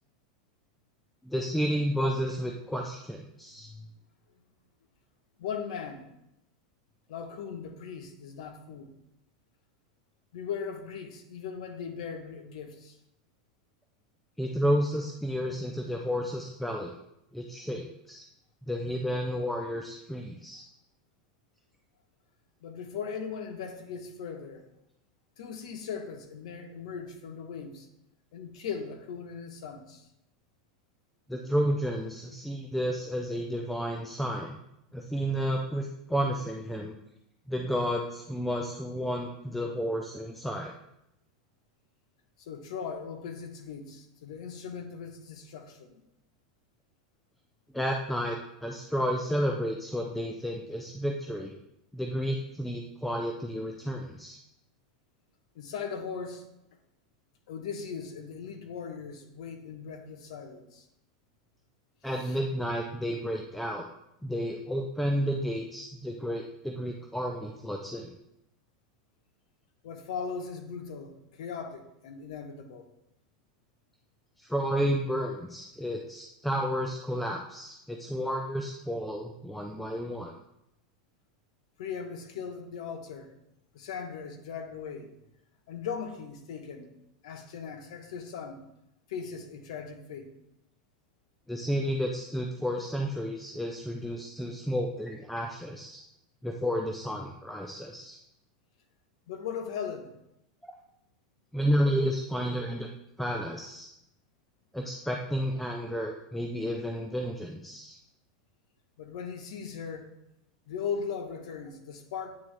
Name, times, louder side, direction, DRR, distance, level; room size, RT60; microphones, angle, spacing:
voice 1, 1.2-3.7 14.4-16.9 17.3-18.2 18.7-20.6 31.3-34.6 34.9-37.0 37.5-40.7 47.7-51.5 51.9-54.4 62.0-63.9 64.2-68.2 74.4-80.3 91.5-96.0 96.4-98.2 101.5-102.9 103.2-103.9 104.7-108.0, equal, 5° left, 1 dB, 0.4 m, -31 dB
voice 2, 5.4-6.1 7.1-8.9 10.3-13.0 22.6-24.7 25.4-27.9 28.3-30.1 42.4-46.0 55.5-56.4 57.5-60.9 62.2-62.4 69.8-72.8 81.8-83.3 83.7-85.2 85.7-87.0 87.2-88.7 89.1-90.3 99.3-100.2 109.0-110.1 110.7-112.3, left 6 dB, 75° left, 6 dB, 0.9 m, -38 dB
8.5 x 3.5 x 3.2 m, 0.83 s
supercardioid pair, 145°, 4 cm